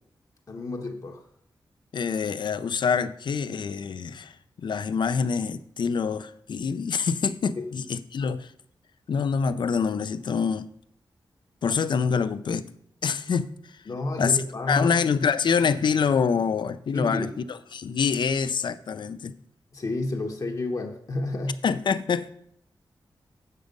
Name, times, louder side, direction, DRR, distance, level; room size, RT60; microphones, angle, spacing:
voice 1, 0.5-1.3 7.6-7.7 13.9-15.0 16.9-17.3 19.7-21.6, left 2 dB, 45° left, 0.9 m, -30 dB
voice 2, 1.9-8.5 9.1-10.7 11.6-12.7 13.0-13.5 14.2-14.4 14.7-17.3 17.7-19.3 21.6-22.3, left 6 dB, 65° left, 0.5 m, -25 dB
8.1 x 6.6 x 5.2 m
wide cardioid pair, 165°, 8 cm